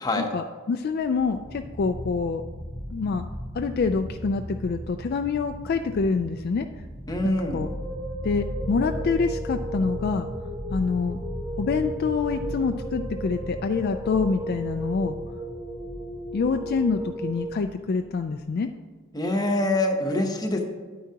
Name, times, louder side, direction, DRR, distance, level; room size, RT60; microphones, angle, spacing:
voice 1, 0.3-2.4 2.9-3.2 3.5-6.7 7.2-7.7 8.2-10.3 10.7-11.2 11.6-15.2 16.3-18.7, left 4 dB, 50° left, 6 dB, 0.3 m, -26 dB
sound 1, 0.9-18.2, equal, 40° right, 2.5 m, -37 dB
voice 2, 7.1-7.6 19.1-20.6, left 1 dB, 20° left, 3 dB, 0.9 m, -25 dB
sound 2, 7.2-17.5, right 1 dB, 15° right, 1.2 m, -36 dB
9.5 x 9.3 x 2.8 m, 1.4 s
head